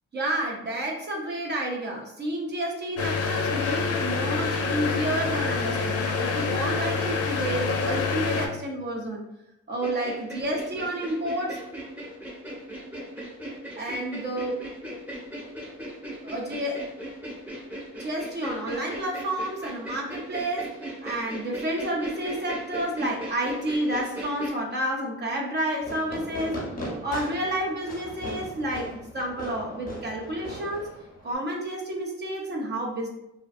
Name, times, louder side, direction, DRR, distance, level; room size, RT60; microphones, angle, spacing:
voice 1, 0.1-9.2 9.7-11.6 13.7-14.6 16.2-16.8 18.0-26.7 27.0-30.9 31.2-33.1, right 1 dB, 35° right, -1 dB, 0.6 m, -30 dB
sound 1, 3.0-8.5, left 4 dB, 55° left, 0.5 m, -27 dB
sound 2, 9.8-24.5, right 1 dB, 5° right, 0.9 m, -38 dB
Fireworks, 25.8-31.3, equal, 30° left, 0.8 m, -38 dB
2.5 x 2.2 x 2.5 m, 0.88 s
cardioid pair, 90°, 30 cm